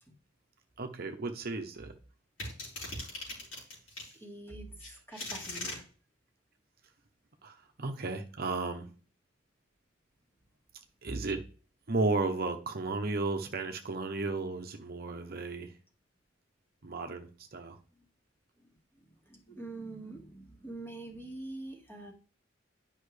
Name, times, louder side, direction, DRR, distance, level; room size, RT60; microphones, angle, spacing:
voice 1, 0.8-1.9 3.1-3.3 7.4-8.9 11.0-11.4 11.9-15.7 16.8-17.8, right 3 dB, 55° right, 5 dB, 0.8 m, -34 dB
sound 1, 2.4-4.1 4.8-5.8, left 2 dB, 80° left, 3.9 m, -39 dB
voice 2, 4.1-5.8 18.6-22.1, right 2 dB, 15° left, 1 dB, 1.9 m, -45 dB
10.5 x 5.6 x 3.3 m, 0.39 s
head